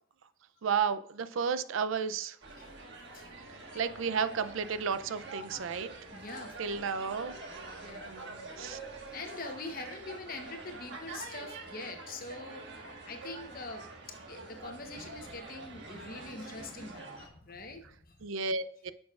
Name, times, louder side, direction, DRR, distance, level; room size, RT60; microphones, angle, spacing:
voice 1, 0.6-2.4 3.7-5.9 6.6-7.3 8.1-8.8 18.2-18.9, right 6 dB, 75° right, 13 dB, 0.5 m, -32 dB
sound 1, 2.4-17.3, right 3 dB, 55° right, 1.5 m, -46 dB
sound 2, 3.2-17.0, equal, 15° right, 1.7 m, -60 dB
voice 2, 6.1-6.8 7.8-8.3 9.1-18.2, left 3 dB, 45° left, 5 dB, 1.1 m, -44 dB
9.3 x 6.3 x 2.4 m, 0.64 s
head